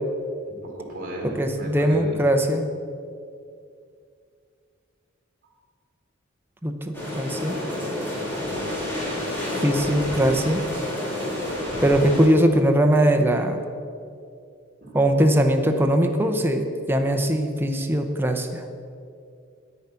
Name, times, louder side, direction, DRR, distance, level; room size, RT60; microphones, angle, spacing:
voice 1, 0.5-2.2 14.8-15.0, right 1 dB, 45° right, -1 dB, 2.5 m, -35 dB
voice 2, 1.2-2.6 6.6-7.6 9.6-10.6 11.8-13.6 14.9-18.6, right 1 dB, 10° right, 4 dB, 0.7 m, -21 dB
sound 1, 6.9-12.3, left 1 dB, 10° left, 3.2 m, -29 dB
9.6 x 8.9 x 5.7 m, 2.4 s
head